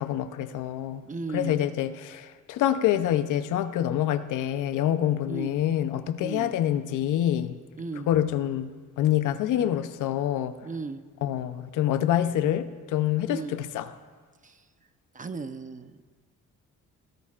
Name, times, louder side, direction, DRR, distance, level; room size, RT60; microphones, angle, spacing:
voice 1, 0.0-1.1 1.3-7.5 8.0-10.5 11.2-13.9, left 11 dB, 85° left, 0.7 m, -26 dB
voice 2, 1.0-1.6 5.3-5.5 6.2-6.5 7.8-8.1 10.6-11.0 13.3-13.6 14.4-14.6 15.1-15.9, right 4 dB, 25° right, 0.8 m, -35 dB
19.0 x 14.0 x 2.5 m
cardioid pair, 90°, 30 cm